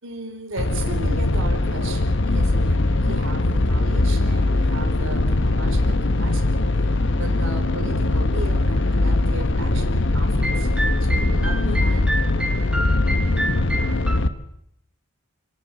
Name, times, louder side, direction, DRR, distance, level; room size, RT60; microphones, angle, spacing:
voice 1, 0.0-12.2, right 2 dB, 70° right, 5 dB, 4.1 m, -36 dB
sound 1, 0.6-14.3, left 2 dB, 60° left, 1.0 m, -21 dB
sound 2, 10.4-14.2, right 1 dB, 5° right, 1.5 m, -29 dB
30.0 x 11.0 x 7.9 m, 0.77 s
head